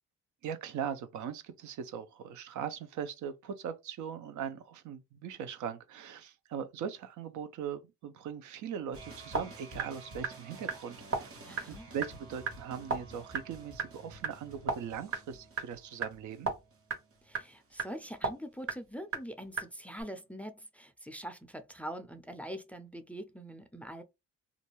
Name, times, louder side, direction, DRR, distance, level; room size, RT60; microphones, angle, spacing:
voice 1, 0.4-16.5, right 8 dB, 75° right, 0.6 m, -40 dB
sound 1, 8.9-18.3 18.5-18.7 19.1-19.2 19.4-19.6 20.0-20.1, right 4 dB, 50° right, 1.1 m, -38 dB
voice 2, 11.5-11.9 17.2-24.0, equal, 5° left, 0.4 m, -43 dB
2.5 x 2.2 x 2.9 m
cardioid pair, 90°, 30 cm